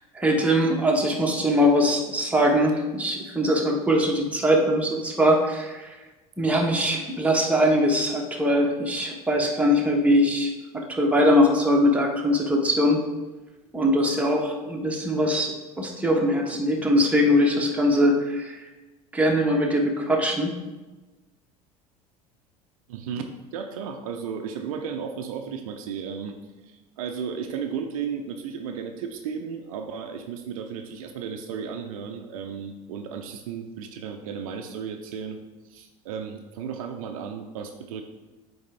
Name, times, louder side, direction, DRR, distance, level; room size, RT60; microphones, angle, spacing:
voice 1, 0.1-5.9 6.4-10.5 10.9-13.0 13.7-18.6 19.1-20.6, equal, 5° right, -1 dB, 1.2 m, -22 dB
voice 2, 22.9-26.4 26.6-35.4 35.7-38.0, right 6 dB, 65° right, 5 dB, 0.5 m, -34 dB
8.3 x 3.4 x 3.4 m, 1.2 s
hypercardioid pair, 75°, 19 cm